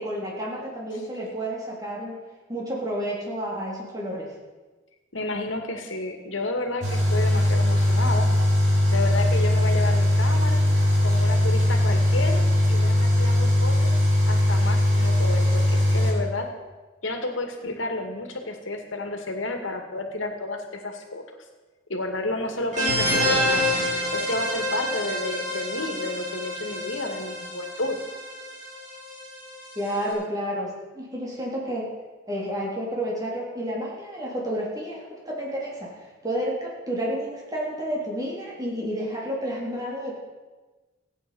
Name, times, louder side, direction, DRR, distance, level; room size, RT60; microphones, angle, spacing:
voice 1, 0.0-2.2 2.5-4.3 29.8-31.9 32.3-40.2, equal, 20° right, -4 dB, 3.7 m, -30 dB
voice 2, 5.1-8.3 8.9-10.6 11.0-12.4 12.7-14.0 14.3-16.5 17.0-21.2 21.9-23.6 24.1-28.0, left 2 dB, 85° left, 4 dB, 2.1 m, -31 dB
sound 1, 6.8-16.1, left 1 dB, 70° right, 5.5 m, -20 dB
sound 2, 22.7-30.1, equal, 40° right, 5.3 m, -28 dB
16.0 x 9.3 x 7.0 m, 1.3 s
head